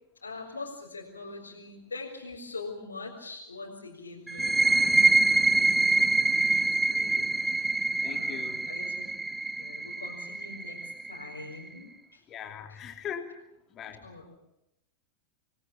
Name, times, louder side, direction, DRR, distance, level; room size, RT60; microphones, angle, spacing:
voice 1, 0.2-7.7 8.1-9.1 9.6-12.2 14.0-14.3, left 3 dB, 75° left, -2 dB, 4.3 m, -43 dB
sound 1, 4.3-11.7, right 3 dB, 10° right, 1.0 m, -25 dB
voice 2, 8.0-8.7 12.3-13.3 13.7-14.1, left 8 dB, 30° left, 5 dB, 3.3 m, -40 dB
27.5 x 19.5 x 8.7 m, 0.86 s
figure-of-eight pair, 90°, 0 cm